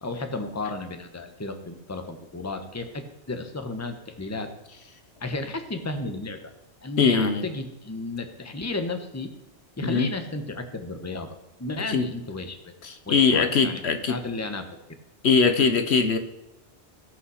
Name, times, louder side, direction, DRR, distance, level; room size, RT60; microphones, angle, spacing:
voice 1, 0.0-4.5 5.2-6.4 6.8-9.3 9.8-11.3 11.6-12.7 13.1-13.8 14.1-14.6, left 2 dB, 15° left, 1.0 m, -33 dB
voice 2, 7.0-7.4 9.8-10.1 11.9-12.1 12.8-14.2 15.2-16.2, left 5 dB, 65° left, 1.1 m, -21 dB
16.5 x 5.6 x 6.3 m
omnidirectional pair, 1.2 m